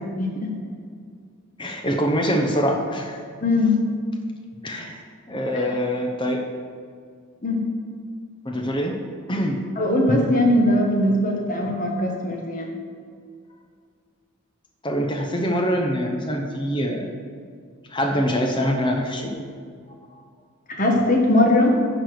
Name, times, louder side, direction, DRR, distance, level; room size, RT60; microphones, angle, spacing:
voice 1, 0.2-0.5 3.4-3.8 5.5-5.7 7.4-7.6 9.8-12.7 20.7-21.8, left 1 dB, 35° left, 0 dB, 1.4 m, -20 dB
voice 2, 1.6-3.2 4.6-5.0 5.3-6.5 8.4-9.0 9.3-9.6 14.8-17.1 17.9-19.3, equal, 20° left, 2 dB, 0.9 m, -24 dB
10.0 x 5.0 x 6.6 m, 2.1 s
head